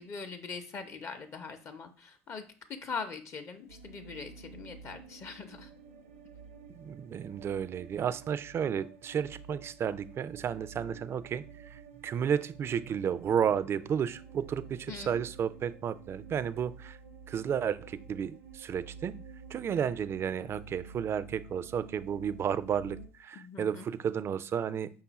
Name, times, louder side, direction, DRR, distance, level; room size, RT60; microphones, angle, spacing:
voice 1, 0.0-5.7 14.9-15.2 23.3-23.9, left 5 dB, 45° left, 7 dB, 0.6 m, -42 dB
sound 1, 3.7-23.1, right 5 dB, 85° right, 0.7 m, -50 dB
voice 2, 6.8-17.0 17.3-19.1 19.5-24.9, right 8 dB, 40° right, 16 dB, 0.3 m, -32 dB
5.3 x 2.4 x 4.0 m, 0.39 s
hypercardioid pair, 75°, 7 cm